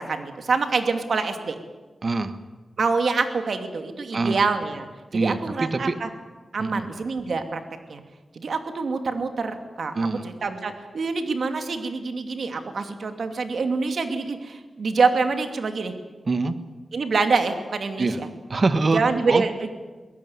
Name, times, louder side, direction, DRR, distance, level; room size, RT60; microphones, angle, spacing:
voice 1, 0.0-1.6 2.8-4.9 5.1-6.1 6.5-7.6 7.9-8.0 8.3-15.9 16.9-18.3 18.9-19.7, right 4 dB, 75° right, 7 dB, 2.5 m, -26 dB
voice 2, 2.0-2.4 4.1-4.4 5.1-6.0 6.6-6.8 9.9-10.3 16.3-16.6 18.0-18.2 18.5-19.0 19.3-19.4, right 3 dB, 50° right, 11 dB, 1.5 m, -24 dB
22.5 x 17.0 x 9.6 m, 1.3 s
wide cardioid pair, 80°, 0 cm